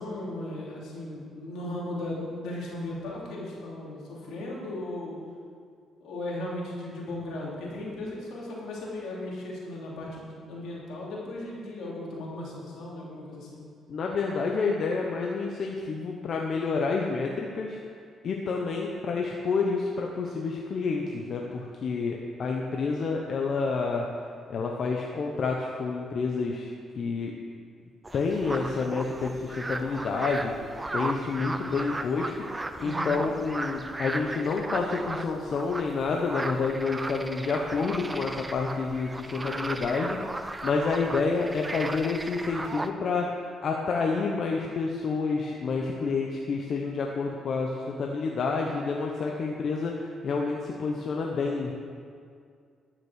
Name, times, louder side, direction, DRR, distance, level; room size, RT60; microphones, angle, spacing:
voice 1, 0.0-5.2 6.0-13.6 32.8-33.2, left 1 dB, 80° left, -4 dB, 3.0 m, -36 dB
voice 2, 13.9-17.8 18.2-24.0 24.5-27.3 28.1-32.3 32.8-40.2 40.6-43.2 43.6-51.7, left 4 dB, 55° left, 0 dB, 1.0 m, -29 dB
sound 1, 28.0-42.9, right 2 dB, 20° right, 0.6 m, -36 dB
12.5 x 6.2 x 6.4 m, 2.2 s
cardioid pair, 90°, 0 cm